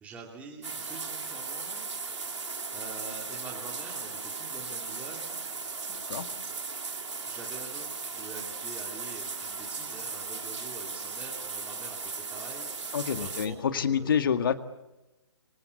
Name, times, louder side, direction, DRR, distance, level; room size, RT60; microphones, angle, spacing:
voice 1, 0.0-5.4 7.2-14.2, right 4 dB, 10° right, -1 dB, 2.8 m, -46 dB
sound 1, 0.6-13.5, right 4 dB, 80° right, 3.7 m, -37 dB
voice 2, 5.9-6.3 12.9-14.5, left 7 dB, 50° left, 9 dB, 2.0 m, -27 dB
26.5 x 25.0 x 8.5 m, 1.0 s
hypercardioid pair, 155°, 15 cm